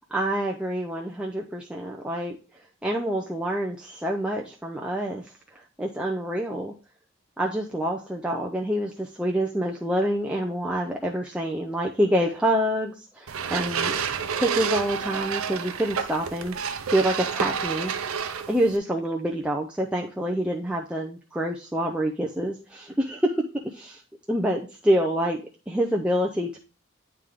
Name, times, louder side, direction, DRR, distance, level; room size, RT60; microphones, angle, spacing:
voice 1, 0.1-2.4 2.8-6.7 7.4-14.0 14.3-17.9 18.5-24.0 24.3-25.4 25.7-26.6, right 1 dB, 5° right, -1 dB, 0.4 m, -27 dB
sound 1, 13.3-18.8, right 7 dB, 90° right, 0.6 m, -29 dB
9.1 x 3.3 x 3.6 m, 0.33 s
head